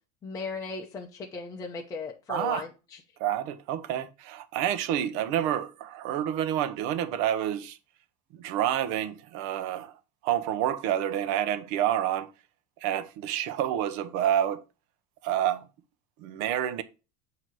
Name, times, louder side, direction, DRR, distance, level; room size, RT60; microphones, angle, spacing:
voice 1, 0.2-3.0, left 4 dB, 15° left, 0.6 m, -37 dB
voice 2, 2.3-2.6 3.2-7.8 8.4-9.9 10.2-12.3 12.8-14.6 15.2-15.6 16.2-16.8, right 11 dB, 60° right, 0.8 m, -28 dB
7.7 x 2.9 x 6.1 m
supercardioid pair, 155°, 20 cm